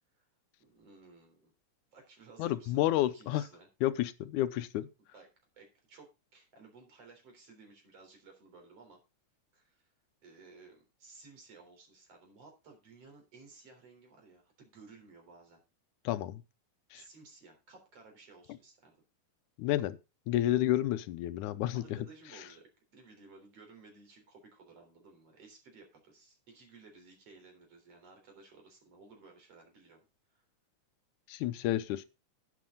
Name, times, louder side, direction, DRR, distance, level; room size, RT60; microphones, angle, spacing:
voice 1, 0.6-1.5 1.9-2.8 3.1-3.7 5.1-5.3 5.5-9.0 9.5-9.8 10.2-15.6 16.9-19.0 21.7-30.1 30.3-30.4, right 4 dB, 50° right, 4.6 m, -56 dB
voice 2, 2.4-3.4 3.8-4.9 16.1-16.4 16.9-17.0 19.6-20.0 20.3-22.0 31.3-32.1, left 14 dB, 80° left, 2.2 m, -30 dB
11.0 x 9.7 x 3.7 m
omnidirectional pair, 3.6 m